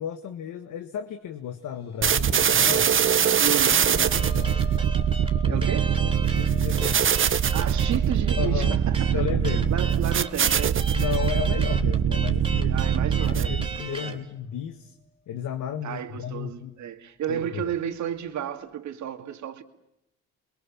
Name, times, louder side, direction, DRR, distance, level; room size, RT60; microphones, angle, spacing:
voice 1, 0.0-3.0 3.9-4.6 5.4-5.7 6.0-7.2 8.4-8.8 9.1-9.7 10.9-14.9 15.3-16.7 17.3-17.7, left 9 dB, 80° left, 1.6 m, -34 dB
sound 1, 1.6-13.0 13.4-13.5 15.0-15.1, left 3 dB, 20° left, 4.8 m, -46 dB
sound 2, 2.0-13.8, right 8 dB, 40° right, 1.0 m, -23 dB
voice 2, 3.4-4.3 5.5-6.0 7.5-10.9 12.6-14.2 15.8-19.6, right 9 dB, 70° right, 2.3 m, -33 dB
sound 3, 3.6-14.2, right 3 dB, 15° right, 3.5 m, -37 dB
29.5 x 22.0 x 7.4 m
cardioid pair, 90°, 30 cm